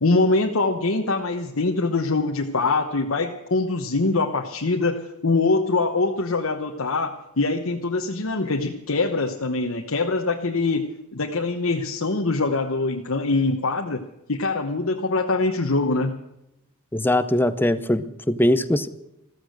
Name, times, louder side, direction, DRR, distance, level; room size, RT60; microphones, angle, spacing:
voice 1, 0.0-10.9 11.1-14.0 14.3-16.1, left 3 dB, 65° left, 3 dB, 1.1 m, -23 dB
voice 2, 16.9-18.9, left 1 dB, 10° left, 12 dB, 0.7 m, -21 dB
14.5 x 14.5 x 6.5 m, 0.88 s
head